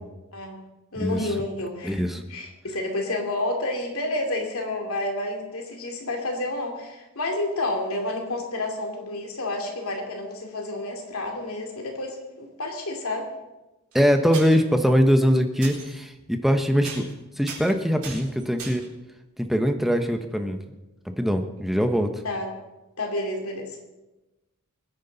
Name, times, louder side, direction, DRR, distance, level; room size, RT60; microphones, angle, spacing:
voice 1, 0.9-13.3 22.2-22.5 23.0-23.8, left 2 dB, 70° left, 2 dB, 2.7 m, -30 dB
voice 2, 1.8-2.2 13.9-17.0 17.4-18.8 19.4-20.6 21.1-22.1, equal, ahead, 6 dB, 0.9 m, -22 dB
sound 1, 13.9-14.0 14.3-14.7 15.6-15.9 16.3-16.6 16.8-17.1 17.4-18.9 21.2-21.3 21.6-21.7, right 5 dB, 80° right, 4.4 m, -38 dB
23.0 x 9.8 x 4.0 m, 1.1 s
head